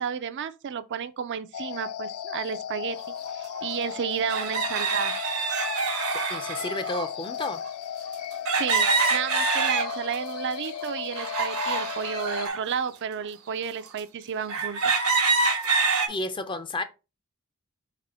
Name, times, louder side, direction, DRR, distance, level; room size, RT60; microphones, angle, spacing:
voice 1, 0.0-3.0 3.3-5.2 8.5-14.8, right 7 dB, 55° right, 0.4 m, -32 dB
sound 1, 1.5-12.5, left 9 dB, 85° left, 0.3 m, -36 dB
sound 2, 3.1-3.2 4.3-7.1 8.4-10.2 10.6-12.6 13.2-13.3 14.0-14.1 14.5-16.1, right 4 dB, 85° right, 1.1 m, -26 dB
voice 2, 6.3-7.6 16.1-16.8, left 2 dB, 25° left, 0.5 m, -31 dB
4.1 x 3.0 x 4.2 m
head